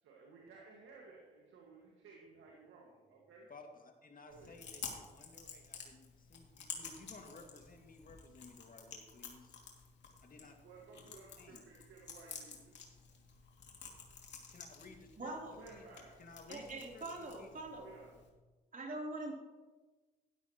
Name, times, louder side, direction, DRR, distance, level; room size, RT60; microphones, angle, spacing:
voice 1, 0.0-3.5 4.2-4.6 10.6-12.7 15.6-16.2 17.8-18.2, right 4 dB, 75° right, -2 dB, 1.9 m, -57 dB
voice 2, 3.5-9.5 10.2-10.5 10.9-11.0 11.4-11.6 14.5-15.3 15.7-15.9 16.2-17.5, left 3 dB, 40° left, 3 dB, 2.2 m, -56 dB
Chewing mastication, 4.3-18.3, left 5 dB, 55° left, 2.7 m, -52 dB
voice 3, 15.2-15.6 16.5-17.9 18.7-19.3, right 2 dB, 40° right, -1 dB, 3.5 m, -43 dB
12.5 x 11.5 x 3.1 m, 1.2 s
hypercardioid pair, 50°, 21 cm